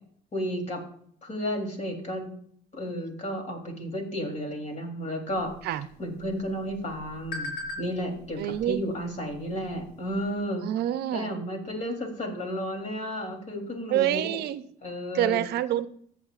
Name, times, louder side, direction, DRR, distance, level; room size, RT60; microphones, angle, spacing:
voice 1, 0.3-0.8 1.2-2.3 2.7-5.5 6.0-10.7 11.1-14.4 14.8-15.5, equal, 40° left, 2 dB, 3.3 m, -32 dB
sound 1, 5.3-10.4, left 2 dB, 70° left, 4.3 m, -43 dB
voice 2, 8.4-8.8 10.6-11.4 13.9-14.6 15.1-15.9, right 12 dB, 75° right, 13 dB, 0.6 m, -27 dB
14.5 x 8.4 x 2.5 m, 0.63 s
cardioid pair, 110°, 17 cm